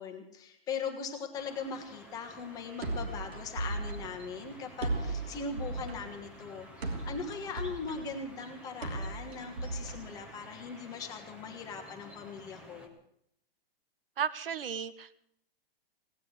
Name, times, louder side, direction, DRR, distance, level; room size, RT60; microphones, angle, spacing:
voice 1, 0.0-12.9, left 5 dB, 10° left, 4 dB, 1.2 m, -40 dB
sound 1, 1.4-12.9, equal, 5° right, 0.9 m, -53 dB
sound 2, 2.8-10.7, right 2 dB, 90° right, 3.2 m, -38 dB
voice 2, 14.2-15.2, right 7 dB, 65° right, 14 dB, 1.0 m, -34 dB
17.5 x 9.6 x 8.0 m, 0.71 s
hypercardioid pair, 175°, 30 cm